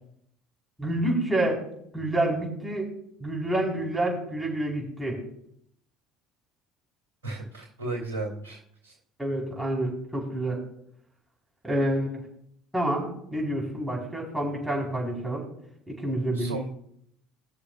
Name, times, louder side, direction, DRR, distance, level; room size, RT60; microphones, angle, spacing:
voice 1, 0.8-1.6 1.9-2.9 3.2-5.2 9.2-10.6 11.6-12.1 12.7-15.4 15.9-16.6, right 1 dB, 5° right, -3 dB, 4.2 m, -28 dB
voice 2, 7.2-8.9 16.3-16.7, right 2 dB, 90° right, -1 dB, 2.2 m, -35 dB
20.0 x 6.7 x 2.4 m, 0.71 s
hypercardioid pair, 65°, 0 cm